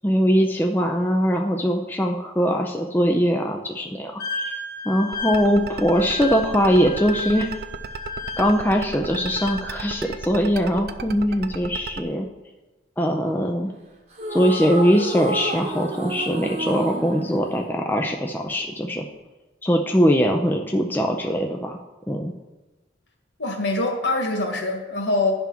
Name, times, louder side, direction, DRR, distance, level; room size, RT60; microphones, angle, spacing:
voice 1, 0.0-4.5 4.9-7.5 8.4-12.3 13.0-13.7 14.3-19.0 19.6-21.8 22.1-22.3, equal, 10° left, 2 dB, 0.4 m, -21 dB
Wind instrument woodwind instrument, 4.2-10.2, left 3 dB, 55° left, 1.1 m, -34 dB
sound 1, 5.1-12.0, right 4 dB, 55° right, 0.4 m, -33 dB
sound 2, 14.1-18.5, right 1 dB, 35° right, 1.0 m, -31 dB
voice 2, 23.4-25.3, left 2 dB, 70° left, 1 dB, 1.6 m, -24 dB
10.0 x 3.5 x 5.9 m, 1.1 s
head